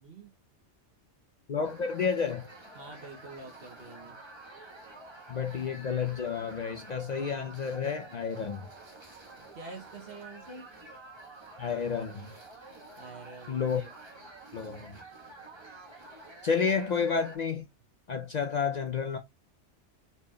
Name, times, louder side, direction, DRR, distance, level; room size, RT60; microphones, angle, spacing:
voice 1, 0.0-0.3 2.8-4.2 8.1-8.5 9.4-10.7 13.0-13.7, right 3 dB, 55° right, 1.0 m, -47 dB
voice 2, 1.5-2.4 5.3-8.7 11.6-12.4 13.5-13.9 14.5-15.0 16.4-17.7 18.1-19.2, left 6 dB, 55° left, 0.5 m, -30 dB
sound 1, 1.6-17.4, right 2 dB, 25° right, 1.2 m, -49 dB
4.2 x 3.3 x 2.2 m
omnidirectional pair, 1.2 m